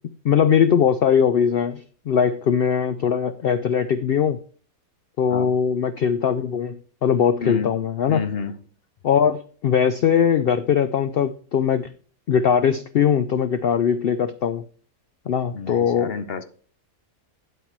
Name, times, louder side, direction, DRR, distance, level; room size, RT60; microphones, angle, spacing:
voice 1, 0.2-4.4 5.2-8.2 9.0-11.9 12.3-14.6 15.3-16.1, left 7 dB, 85° left, 0.5 m, -20 dB
voice 2, 8.1-8.6 15.5-16.4, left 5 dB, 50° left, 0.8 m, -29 dB
9.5 x 7.9 x 4.6 m
omnidirectional pair, 1.6 m